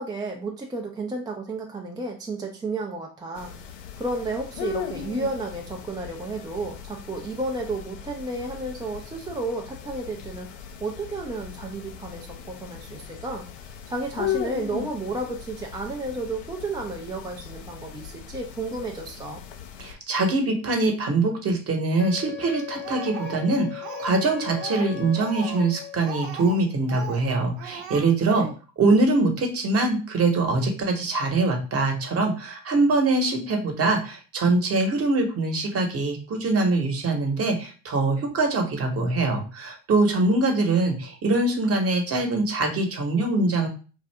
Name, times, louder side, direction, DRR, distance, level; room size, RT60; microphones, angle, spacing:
voice 1, 0.0-3.6 4.0-13.4 13.9-19.4 28.2-28.5, right 2 dB, 10° right, 1 dB, 0.3 m, -32 dB
sound 1, 3.3-19.9, left 10 dB, 85° left, 0.5 m, -38 dB
voice 2, 19.8-28.5 28.8-43.7, right 2 dB, 40° right, 3 dB, 1.0 m, -23 dB
Wind instrument woodwind instrument, 22.0-26.1, left 12 dB, 40° left, 0.9 m, -38 dB
Speech, 22.8-24.3 24.5-26.6 26.9-27.3 27.6-28.0, right 4 dB, 85° right, 0.7 m, -37 dB
2.6 x 2.4 x 3.2 m, 0.36 s
hypercardioid pair, 80°, 38 cm